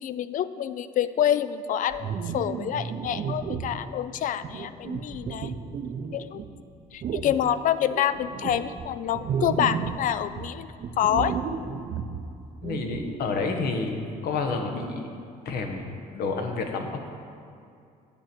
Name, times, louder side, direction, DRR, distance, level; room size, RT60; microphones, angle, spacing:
voice 1, 0.0-5.5 6.1-6.4 6.9-10.7 11.0-11.3, left 10 dB, 50° left, 14 dB, 0.4 m, -27 dB
sound 1, 1.9-3.8 4.4-6.5 7.0-7.3 7.9-10.1 10.3-13.2, right 6 dB, 45° right, 0.6 m, -33 dB
voice 2, 12.6-15.1 15.4-16.9, left 4 dB, 70° left, 4 dB, 1.2 m, -29 dB
10.0 x 7.9 x 4.4 m, 2.4 s
cardioid pair, 110°, 17 cm